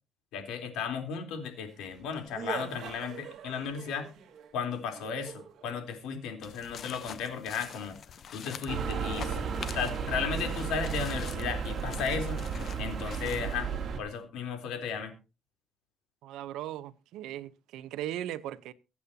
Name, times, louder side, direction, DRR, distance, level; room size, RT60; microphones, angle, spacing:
voice 1, 0.3-4.1 4.5-8.0 8.3-9.4 9.7-12.4 12.8-13.7 14.0-15.1, left 6 dB, 85° left, 3.5 m, -35 dB
sound 1, 1.6-5.9 7.8-7.9 8.4-10.9, right 7 dB, 60° right, 1.8 m, -45 dB
sound 2, 6.4-13.6, left 8 dB, 45° left, 0.8 m, -46 dB
sound 3, 8.7-14.0, right 6 dB, 40° right, 2.7 m, -34 dB
voice 2, 16.2-18.7, right 13 dB, 85° right, 0.8 m, -38 dB
23.5 x 8.4 x 2.8 m
cardioid pair, 150°, 0 cm